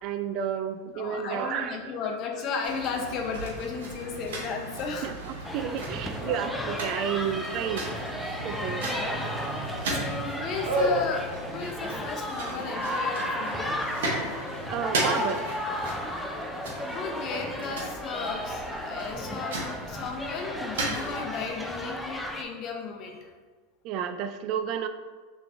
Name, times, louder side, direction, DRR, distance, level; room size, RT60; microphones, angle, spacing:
voice 1, 0.0-2.0 5.0-7.8 8.4-8.8 14.7-15.4 23.8-24.9, right 8 dB, 50° right, 9 dB, 0.3 m, -31 dB
voice 2, 0.9-5.1 6.3-6.4 8.5-9.3 9.9-14.1 16.6-23.3, left 5 dB, 45° left, 2 dB, 0.8 m, -35 dB
sound 1, 2.6-21.5, right 1 dB, 75° right, 1.1 m, -35 dB
sound 2, 5.4-22.4, left 1 dB, 5° left, 0.5 m, -34 dB
5.9 x 3.1 x 2.6 m, 1.4 s
hypercardioid pair, 100°, 0 cm